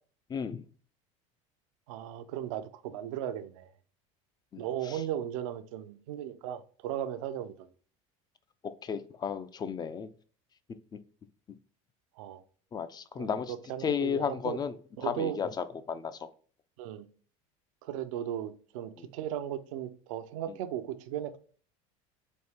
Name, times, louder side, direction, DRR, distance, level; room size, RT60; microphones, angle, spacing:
voice 1, 0.3-0.6 4.5-5.0 8.8-10.1 12.7-13.5 13.8-14.7 15.0-16.3 19.0-19.1, left 7 dB, 25° left, 0.4 m, -33 dB
voice 2, 1.9-3.7 4.6-7.7 12.2-12.4 13.2-14.6 15.0-15.4 16.8-17.1 17.8-21.4, right 11 dB, 80° right, 0.5 m, -36 dB
4.2 x 2.7 x 3.6 m
supercardioid pair, 105°, 17 cm